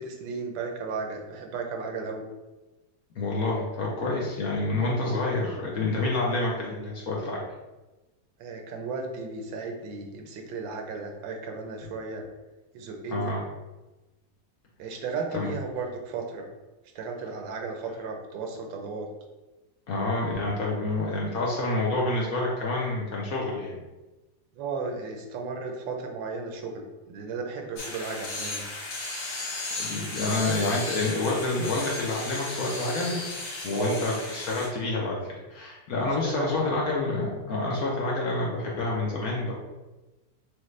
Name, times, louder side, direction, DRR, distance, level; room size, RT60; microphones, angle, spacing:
voice 1, 0.0-2.2 8.4-12.2 12.7-13.3 14.8-16.5 16.9-19.1 24.6-28.6 33.7-34.0 36.2-36.8, right 4 dB, 80° right, 3 dB, 1.4 m, -34 dB
voice 2, 3.2-7.4 13.1-13.4 15.3-15.6 19.9-23.8 29.4-29.5 29.8-33.2 33.6-35.2 35.5-39.5, left 2 dB, 60° left, -3 dB, 1.0 m, -28 dB
sound 1, 27.8-34.7, left 2 dB, 85° left, 2.1 m, -35 dB
6.4 x 2.2 x 3.2 m, 1.1 s
omnidirectional pair, 2.1 m